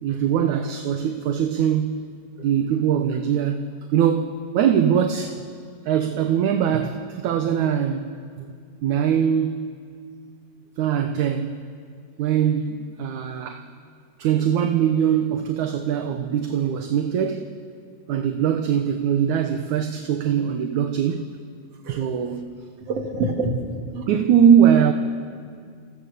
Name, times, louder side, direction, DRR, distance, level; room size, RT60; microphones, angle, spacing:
voice 1, 0.0-2.1 2.4-5.4 5.9-8.1 8.8-9.7 10.8-11.6 12.2-13.7 14.2-17.5 18.1-21.3 21.9-22.4 24.1-24.9, right 8 dB, 70° right, 2.4 m, -21 dB
voice 2, 21.8-22.3 22.9-24.1, right 2 dB, 50° right, 3.5 m, -28 dB
29.0 x 28.5 x 6.9 m
omnidirectional pair, 3.8 m